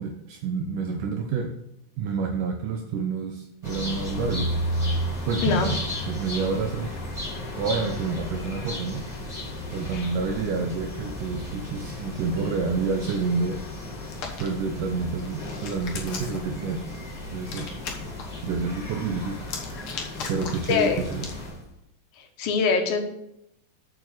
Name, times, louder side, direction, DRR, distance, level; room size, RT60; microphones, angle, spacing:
voice 1, 0.0-1.5 2.0-4.6 5.3-5.8 6.1-6.9 7.6-9.0 9.7-13.6 14.4-16.9 17.3-17.8 18.4-19.4 20.3-21.3, right 5 dB, 75° right, 3 dB, 2.1 m, -28 dB
sound 1, 3.6-21.6, left 1 dB, ahead, 3.1 m, -34 dB
Hands, 14.0-14.5 15.2-16.5 17.4-18.2 19.4-21.4, left 5 dB, 65° left, 1.4 m, -37 dB
voice 2, 20.7-21.0 22.2-23.0, left 5 dB, 85° left, 4 dB, 2.9 m, -23 dB
7.0 x 5.9 x 6.3 m, 0.80 s
omnidirectional pair, 4.0 m